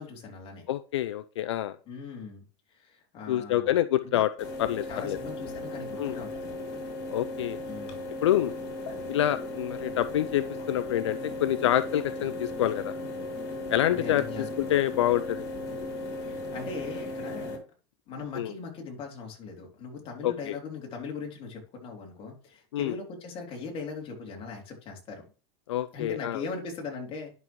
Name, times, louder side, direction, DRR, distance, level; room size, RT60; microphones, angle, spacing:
voice 1, 0.0-0.7 1.9-3.8 4.1-4.2 4.9-6.6 7.7-8.0 8.9-9.1 13.9-14.8 16.2-17.6 18.1-25.3 25.9-27.3, left 4 dB, 40° left, 0 dB, 3.4 m, -40 dB
voice 2, 0.7-1.8 3.3-4.3 4.6-5.2 6.0-6.1 7.1-7.6 8.2-8.5 9.1-12.9 13.7-15.5 18.3-18.5 20.2-20.5 22.7-22.9 25.7-26.4, left 12 dB, 90° left, 14 dB, 0.5 m, -27 dB
sound 1, 4.4-17.6, left 2 dB, 60° left, 3.3 m, -36 dB
11.0 x 6.1 x 3.1 m, 0.36 s
supercardioid pair, 115°, 14 cm